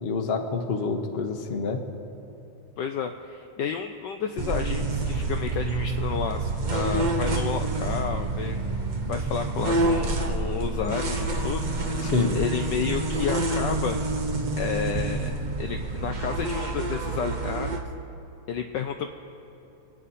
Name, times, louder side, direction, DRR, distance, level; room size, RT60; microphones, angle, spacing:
voice 1, 0.0-1.8 12.0-12.4, left 4 dB, 40° left, 6 dB, 0.9 m, -27 dB
voice 2, 2.8-8.6 9.1-11.7 12.3-14.0 14.6-17.8 18.5-19.1, left 7 dB, 75° left, 6 dB, 1.1 m, -31 dB
sound 1, 4.4-17.8, right 2 dB, 80° right, 0.4 m, -28 dB
27.0 x 9.1 x 4.2 m, 3.0 s
omnidirectional pair, 2.4 m